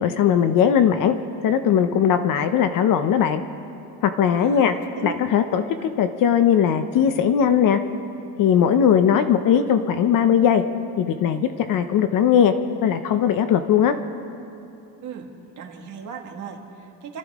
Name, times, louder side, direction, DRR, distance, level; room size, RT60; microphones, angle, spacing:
voice 1, 0.0-1.2 1.4-3.4 4.0-4.7 5.0-7.8 8.4-10.6 11.0-12.5 12.8-13.9, left 8 dB, 45° left, 9 dB, 0.7 m, -19 dB
voice 2, 4.4-5.1 5.5-5.6 15.0-15.3 15.6-17.2, right 7 dB, 40° right, 1 dB, 1.8 m, -37 dB
29.0 x 13.5 x 3.6 m, 2.8 s
cardioid pair, 165°, 45 cm